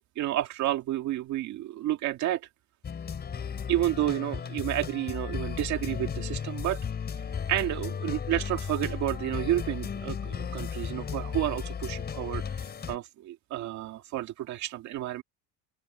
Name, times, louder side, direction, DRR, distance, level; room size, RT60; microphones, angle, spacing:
voice 1, 0.0-2.4 3.7-6.8 7.5-15.2, right 14 dB, 55° right, 2.1 m, -30 dB
sound 1, 2.8-13.0, left 7 dB, 30° left, 4.8 m, -35 dB
open air
cardioid pair, 130°, 33 cm